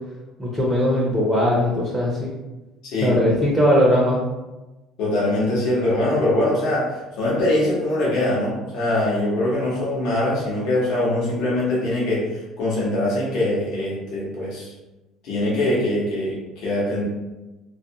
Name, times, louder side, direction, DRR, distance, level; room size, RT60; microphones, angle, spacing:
voice 1, 0.4-2.3 3.0-4.2, equal, ahead, -5 dB, 0.4 m, -19 dB
voice 2, 2.8-3.1 5.0-14.7 15.2-17.0, left 1 dB, 65° left, -6 dB, 0.8 m, -23 dB
2.4 x 2.1 x 2.7 m, 1.1 s
cardioid pair, 160°, 0 cm